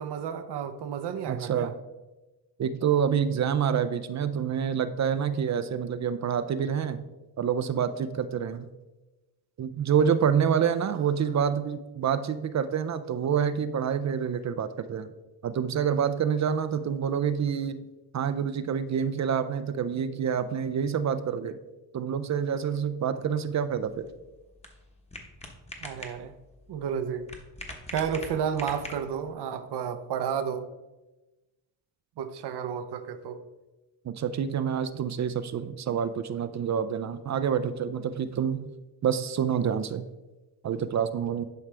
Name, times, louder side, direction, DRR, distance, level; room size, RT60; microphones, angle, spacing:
voice 1, 0.0-1.7 25.8-26.3 26.7-27.3 27.9-30.6 32.2-33.4, right 7 dB, 75° right, 9 dB, 0.7 m, -31 dB
voice 2, 1.3-1.7 2.6-7.0 7.4-8.7 9.6-15.1 15.4-17.9 18.1-21.6 21.9-24.1 34.0-38.7 39.0-40.0 40.6-41.4, right 7 dB, 45° right, 11 dB, 0.4 m, -27 dB
sound 1, 23.7-29.3, left 1 dB, 15° left, 1.1 m, -44 dB
11.0 x 4.8 x 3.3 m, 1.1 s
cardioid pair, 125°, 41 cm